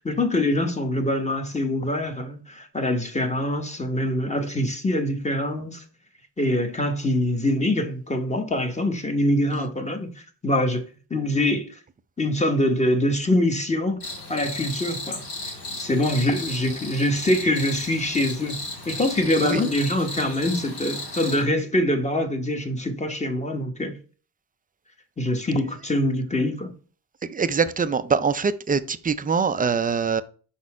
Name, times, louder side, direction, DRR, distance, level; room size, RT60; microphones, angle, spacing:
voice 1, 0.0-5.8 6.4-10.8 11.1-11.8 12.2-24.0 25.2-26.7, left 1 dB, 15° left, 1.1 m, -24 dB
Cricket, 14.0-21.4, left 2 dB, 90° left, 3.1 m, -34 dB
voice 2, 27.2-30.2, right 5 dB, 25° right, 0.4 m, -23 dB
5.4 x 4.2 x 4.7 m
cardioid pair, 100°, 39 cm